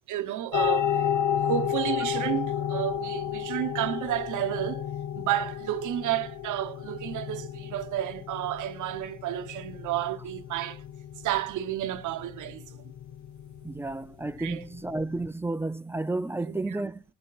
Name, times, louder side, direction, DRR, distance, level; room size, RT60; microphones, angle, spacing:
voice 1, 0.1-0.9 1.4-4.9 5.1-10.8 11.2-12.8 14.4-14.7 16.5-16.9, right 12 dB, 80° right, 0.8 m, -31 dB
sound 1, 0.5-15.3, left 9 dB, 70° left, 0.7 m, -32 dB
voice 2, 13.6-17.0, right 2 dB, 10° right, 0.4 m, -32 dB
18.0 x 7.6 x 2.4 m
cardioid pair, 90°, 30 cm